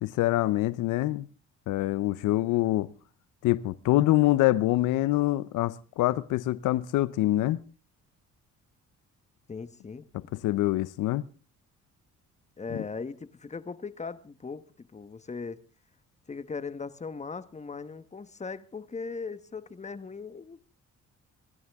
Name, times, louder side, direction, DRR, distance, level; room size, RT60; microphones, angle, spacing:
voice 1, 0.0-1.3 1.7-2.9 3.4-7.6 10.4-11.2 12.7-12.8, left 16 dB, 90° left, 0.7 m, -25 dB
voice 2, 9.5-10.0 12.6-15.6 16.3-20.6, left 4 dB, 25° left, 1.2 m, -39 dB
28.0 x 12.5 x 3.6 m
cardioid pair, 90°, 30 cm